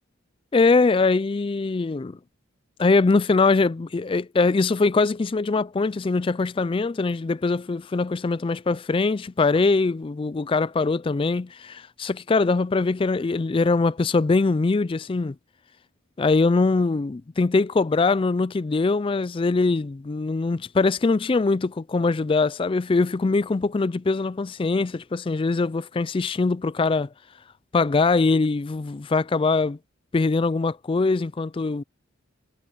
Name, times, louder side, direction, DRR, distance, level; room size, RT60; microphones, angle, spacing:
voice 1, 0.5-2.2 2.8-15.4 16.2-27.1 27.7-29.8 30.1-31.8, left 3 dB, 25° left, 0.3 m, -22 dB
head